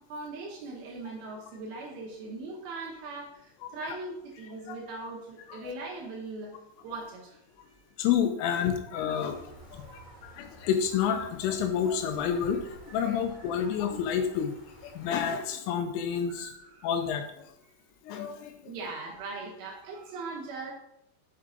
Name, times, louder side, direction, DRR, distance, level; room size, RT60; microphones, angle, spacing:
voice 1, 0.1-6.5 6.8-7.4 9.0-9.2 9.7-10.5 12.9-13.7 16.2-16.9 18.6-20.7, right 3 dB, 80° right, -2 dB, 2.1 m, -41 dB
voice 2, 3.6-4.0 4.7-4.8 8.0-14.5 14.8-16.5 16.8-17.2 18.1-18.7, left 8 dB, 85° left, 6 dB, 3.0 m, -29 dB
sound 1, 9.1-15.3, right 2 dB, 20° right, 1.3 m, -52 dB
7.3 x 4.6 x 3.7 m, 0.80 s
omnidirectional pair, 5.9 m